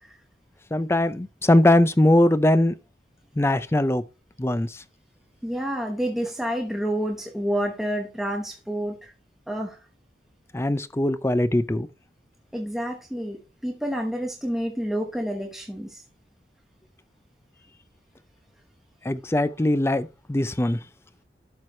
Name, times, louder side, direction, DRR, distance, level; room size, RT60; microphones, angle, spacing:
voice 1, 0.7-2.7 3.4-4.0 4.4-4.7 10.5-11.9 19.1-20.8, left 1 dB, 15° left, 0.5 m, -21 dB
voice 2, 5.4-9.1 9.5-9.8 12.5-16.0, equal, ahead, 1.0 m, -29 dB
12.0 x 4.7 x 3.2 m
head